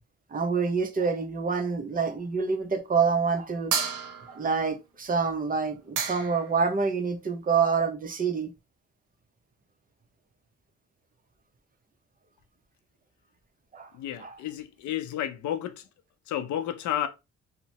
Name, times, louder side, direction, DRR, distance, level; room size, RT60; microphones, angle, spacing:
voice 1, 0.3-3.7 4.3-8.5 13.7-13.9 14.2-14.3, right 5 dB, 30° right, 0.6 m, -27 dB
sound 1, 3.7-4.5 5.6-5.7 6.0-6.5, right 6 dB, 75° right, 0.7 m, -30 dB
voice 2, 13.9-15.8 16.3-17.1, left 11 dB, 70° left, 0.5 m, -31 dB
2.8 x 2.1 x 2.8 m
cardioid pair, 90°, 30 cm